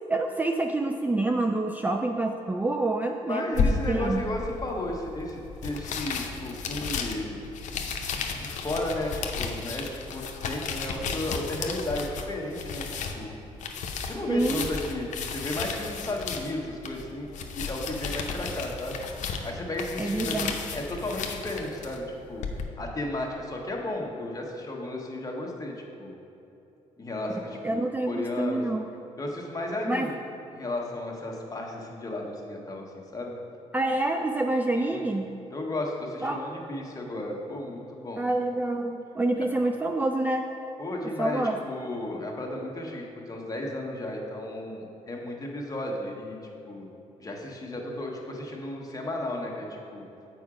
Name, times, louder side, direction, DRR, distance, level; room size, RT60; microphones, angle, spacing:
voice 1, 0.1-4.2 14.3-14.7 20.0-20.6 27.6-28.9 29.9-30.1 33.7-35.3 36.2-36.4 38.2-40.5 41.2-41.6, right 2 dB, 15° right, 4 dB, 0.4 m, -27 dB
voice 2, 3.3-7.5 8.3-13.3 14.0-17.3 17.5-19.0 19.4-20.4 20.7-22.5 22.8-26.1 27.0-28.7 29.2-30.2 30.5-32.8 33.1-33.3 34.7-35.1 35.5-38.3 40.8-46.4 46.7-46.9 47.2-50.0, left 1 dB, 30° left, -1 dB, 1.3 m, -34 dB
sound 1, 3.5-22.6, left 5 dB, 70° left, 0.7 m, -34 dB
7.1 x 4.8 x 4.9 m, 2.9 s
cardioid pair, 80°, 13 cm